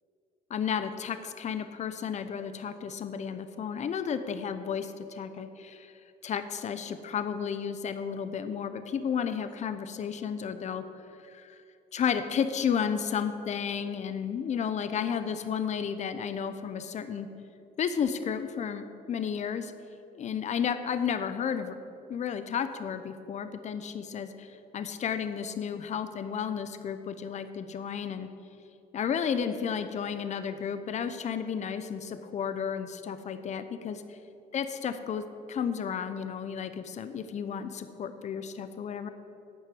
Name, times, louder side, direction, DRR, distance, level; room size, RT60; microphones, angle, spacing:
voice 1, 0.5-5.9 6.2-10.8 11.2-11.6 11.9-17.3 17.8-19.7 20.1-21.8 22.1-28.3 28.9-34.2 34.5-35.2 35.5-39.1, left 7 dB, 45° left, 10 dB, 0.8 m, -32 dB
11.0 x 6.3 x 7.7 m, 2.7 s
cardioid pair, 110°, 17 cm